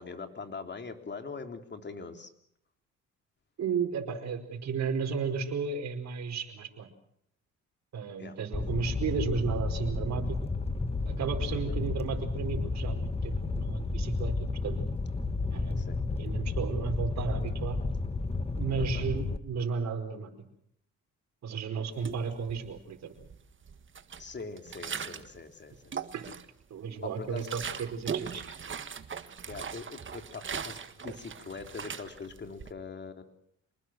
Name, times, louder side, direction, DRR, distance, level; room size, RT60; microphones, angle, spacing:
voice 1, 0.0-2.3 8.2-8.4 11.5-11.8 15.8-16.0 18.8-19.1 24.2-25.8 27.2-27.5 29.5-33.3, left 4 dB, 35° left, 6 dB, 3.4 m, -42 dB
voice 2, 3.6-6.9 7.9-10.4 11.0-14.8 15.5-17.8 18.6-20.3 21.4-23.1 26.1-26.3 26.7-28.5, right 5 dB, 60° right, 4 dB, 4.9 m, -34 dB
Fire, 8.5-19.4, left 3 dB, 20° left, 1.8 m, -32 dB
sound 1, 22.0-22.8 23.2-25.4 25.7-26.6 27.0-32.7, right 7 dB, 40° right, 1.7 m, -40 dB
27.5 x 20.5 x 6.3 m, 0.70 s
cardioid pair, 90°, 30 cm